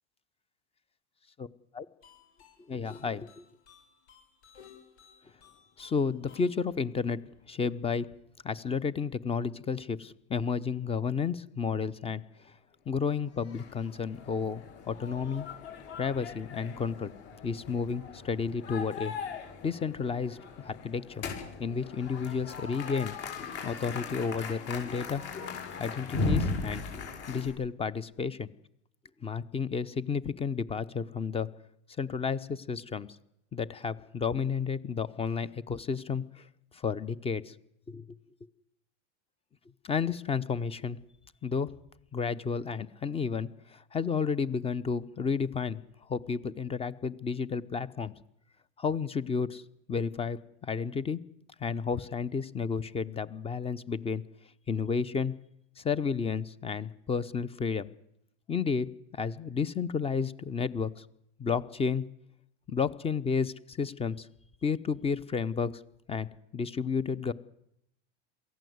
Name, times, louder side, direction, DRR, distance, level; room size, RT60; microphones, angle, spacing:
sound 1, 2.0-7.9, left 7 dB, 80° left, 7.5 m, -58 dB
voice 1, 2.7-3.4 5.8-7.2 7.5-8.1 8.4-12.2 12.9-15.5 16.0-17.1 17.4-19.1 19.6-20.4 20.6-21.2 21.6-23.1 23.6-25.2 25.8-26.8 27.3-28.5 29.2-31.5 32.0-33.1 33.5-36.4 36.8-37.5 37.9-38.2 39.8-41.0 41.4-41.7 42.1-45.8 46.1-48.1 48.8-49.6 49.9-51.2 51.6-54.2 54.7-55.3 55.8-57.9 58.5-58.9 59.2-61.0 61.4-62.0 62.7-64.3 64.6-65.7 66.1-66.3 66.5-67.3, left 5 dB, 15° left, 20 dB, 0.8 m, -31 dB
sound 2, 13.3-27.5, left 4 dB, 45° left, 7.0 m, -38 dB
23.0 x 15.5 x 8.0 m, 0.77 s
supercardioid pair, 130°, 33 cm